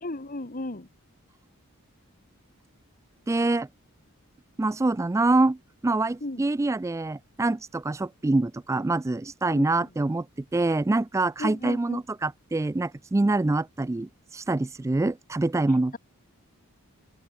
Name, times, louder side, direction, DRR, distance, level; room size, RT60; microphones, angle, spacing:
voice 1, 0.0-0.9 6.2-6.4 9.5-9.6 11.4-12.0, left 2 dB, 40° left, 1.5 m, -34 dB
voice 2, 3.3-3.7 4.6-5.6 5.8-10.3 10.5-16.0, right 2 dB, 15° right, 0.3 m, -25 dB
open air
head